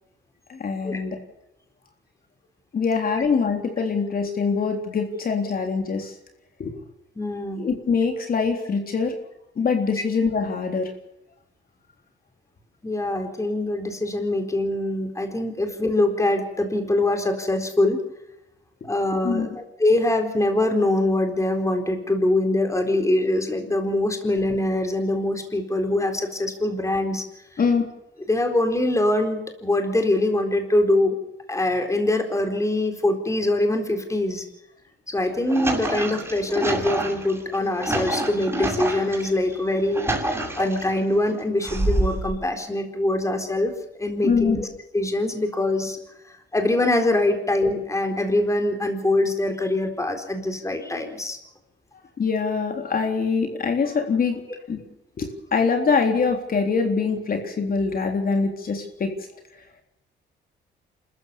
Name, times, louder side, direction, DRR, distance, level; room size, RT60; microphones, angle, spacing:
voice 1, 0.5-1.2 2.7-6.1 6.6-6.7 7.6-9.2 9.6-10.9 19.2-19.5 27.6-27.8 44.2-44.6 52.2-54.4 54.7-54.8 55.2-59.1, left 5 dB, 45° left, 4 dB, 3.6 m, -23 dB
voice 2, 7.2-7.6 12.8-18.0 18.8-27.2 27.5-27.6 28.3-31.2 31.5-34.5 35.1-43.7 44.0-44.7 44.9-46.0 46.3-51.4, left 1 dB, 15° left, 5 dB, 4.1 m, -23 dB
Canos entupidos, 35.2-39.3 39.7-41.0 41.6-42.3, right 1 dB, 10° right, 7.2 m, -27 dB
27.0 x 14.5 x 7.2 m, 0.88 s
cardioid pair, 90°, 20 cm